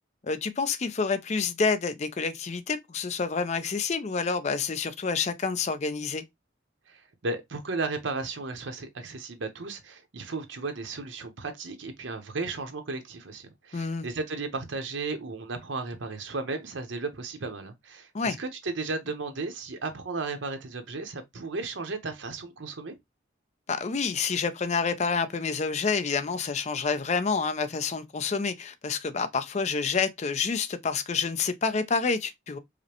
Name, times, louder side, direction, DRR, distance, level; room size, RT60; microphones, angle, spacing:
voice 1, 0.2-6.2 13.7-14.1 18.1-18.4 23.7-32.6, left 5 dB, 35° left, 0.4 m, -28 dB
voice 2, 6.9-22.9, right 3 dB, 70° right, 0.8 m, -35 dB
4.9 x 2.1 x 2.9 m
head